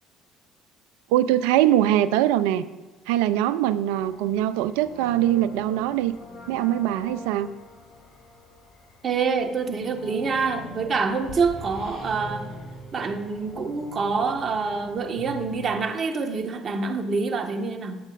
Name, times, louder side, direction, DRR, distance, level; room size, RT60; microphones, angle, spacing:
voice 1, 1.1-2.7 3.1-6.1 6.5-7.5, right 12 dB, 85° right, 14 dB, 0.5 m, -22 dB
sound 1, 3.9-15.8, left 1 dB, 65° left, 4.0 m, -43 dB
voice 2, 9.0-12.5 12.9-18.0, right 4 dB, 45° right, 4 dB, 1.6 m, -26 dB
19.0 x 8.5 x 2.6 m, 1.3 s
supercardioid pair, 75°, 0 cm